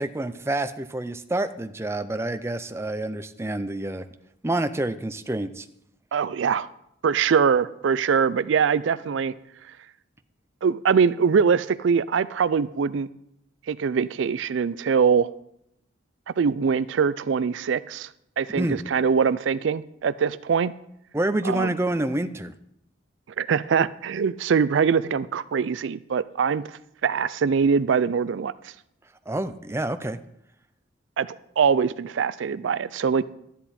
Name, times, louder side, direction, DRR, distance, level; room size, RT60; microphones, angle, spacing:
voice 1, 0.0-4.0 4.4-5.7 18.5-18.8 21.1-22.5 29.3-30.2, right 1 dB, 15° right, 10 dB, 0.5 m, -28 dB
voice 2, 6.1-6.7 7.0-9.3 10.6-13.1 13.7-15.3 16.4-18.1 18.4-20.7 21.4-21.7 23.4-26.6 27.0-28.7 31.2-33.2, right 6 dB, 70° right, 17 dB, 0.4 m, -23 dB
12.5 x 10.0 x 4.3 m, 0.78 s
head